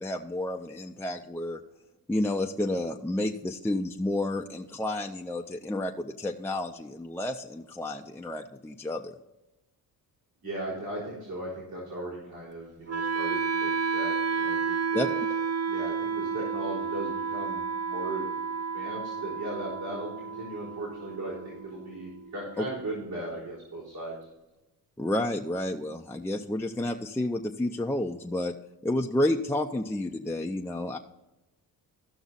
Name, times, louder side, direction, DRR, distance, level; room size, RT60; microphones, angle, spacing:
voice 1, 0.0-1.6 2.1-9.1 14.9-15.1 22.6-22.7 25.0-28.5 28.8-31.0, left 1 dB, 5° left, 2 dB, 0.5 m, -30 dB
voice 2, 10.4-15.1 15.7-18.3 18.7-24.2, right 2 dB, 75° right, -6 dB, 4.2 m, -37 dB
Wind instrument woodwind instrument, 12.9-22.9, right 5 dB, 40° right, 0.6 m, -31 dB
15.0 x 6.0 x 4.0 m, 0.98 s
cardioid pair, 85°, 38 cm